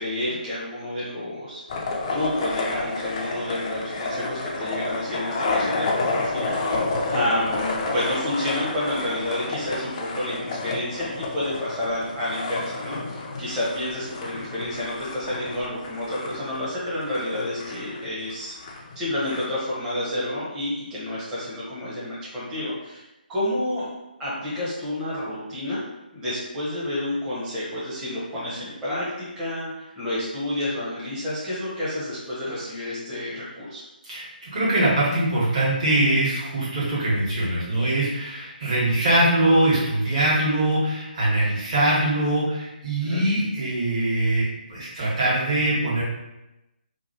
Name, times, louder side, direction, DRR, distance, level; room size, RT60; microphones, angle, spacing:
voice 1, 0.0-6.8 7.1-18.6 18.9-23.0 23.3-23.9 24.2-25.8 26.1-33.8 43.0-43.2, left 1 dB, 10° right, -9 dB, 0.9 m, -29 dB
sound 1, 1.7-19.4, left 3 dB, 30° left, 0.5 m, -30 dB
voice 2, 34.0-46.0, right 1 dB, 40° right, -8 dB, 1.3 m, -22 dB
2.9 x 2.4 x 2.7 m, 0.96 s
figure-of-eight pair, 150°, 5 cm